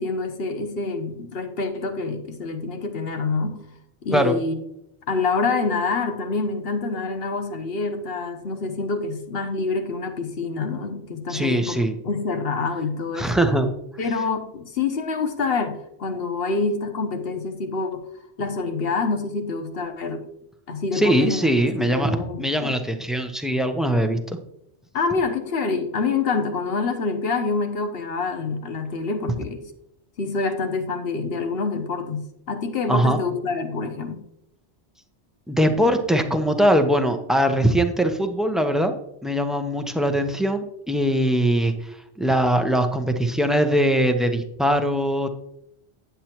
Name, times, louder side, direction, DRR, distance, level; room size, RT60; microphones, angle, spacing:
voice 1, 0.0-3.6 4.0-4.6 5.1-11.8 12.0-13.3 14.0-18.1 18.4-20.2 20.7-21.4 21.8-22.8 24.9-29.6 30.2-34.2, left 4 dB, 60° left, 6 dB, 1.1 m, -26 dB
voice 2, 11.3-12.0 13.2-13.7 20.9-24.4 32.9-33.2 35.5-38.9 39.2-45.3, right 1 dB, ahead, 6 dB, 0.5 m, -21 dB
9.1 x 8.2 x 2.9 m, 0.79 s
omnidirectional pair, 1.1 m